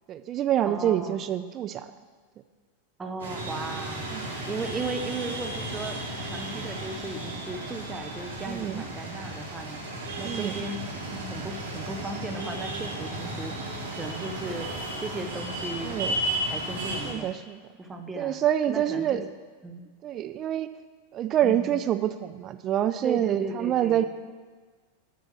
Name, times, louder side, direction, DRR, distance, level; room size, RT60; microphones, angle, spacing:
voice 1, 0.1-1.9 4.1-4.3 8.5-8.8 10.2-10.6 15.8-16.2 17.1-17.6 18.2-19.2 20.0-20.7 21.1-24.0, right 11 dB, 30° right, 9 dB, 0.4 m, -26 dB
voice 2, 0.6-1.2 3.0-6.0 6.3-10.8 11.1-14.7 15.0-16.0 16.5-17.4 17.8-19.2 19.6-19.9 21.4-21.8 23.0-24.1, right 2 dB, 15° right, 5 dB, 0.8 m, -36 dB
sound 1, 3.2-17.1, right 1 dB, 65° right, 2.0 m, -34 dB
7.9 x 6.4 x 7.1 m, 1.4 s
figure-of-eight pair, 90°, 0 cm